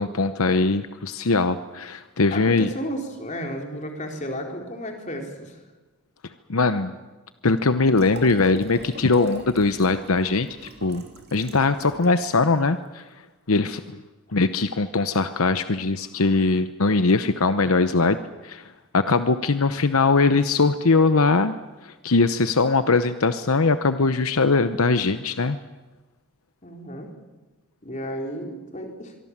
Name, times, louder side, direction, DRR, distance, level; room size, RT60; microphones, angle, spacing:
voice 1, 0.0-2.7 6.5-6.9 7.4-10.5 10.8-11.0 11.3-13.0 13.5-14.0 14.3-18.2 18.4-18.6 18.9-21.6 21.8-25.6, left 3 dB, 75° left, 11 dB, 0.9 m, -21 dB
voice 2, 2.3-5.6 26.6-27.1 27.8-29.1, equal, 35° left, 2 dB, 4.1 m, -33 dB
Liquid, 7.9-12.2 12.5-12.6, right 2 dB, 45° right, 3.4 m, -43 dB
25.0 x 23.5 x 7.4 m, 1.2 s
head